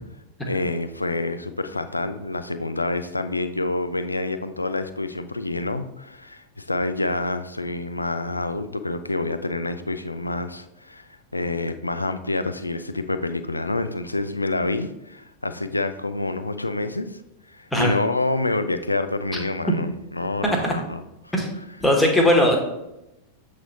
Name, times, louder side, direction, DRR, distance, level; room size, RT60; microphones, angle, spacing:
voice 1, 0.5-17.2 17.5-21.3 22.3-22.4, left 2 dB, 85° left, 10 dB, 0.4 m, -27 dB
voice 2, 21.8-22.6, left 1 dB, 10° left, 1 dB, 1.3 m, -18 dB
7.6 x 3.2 x 4.0 m, 0.90 s
figure-of-eight pair, 90°, 0 cm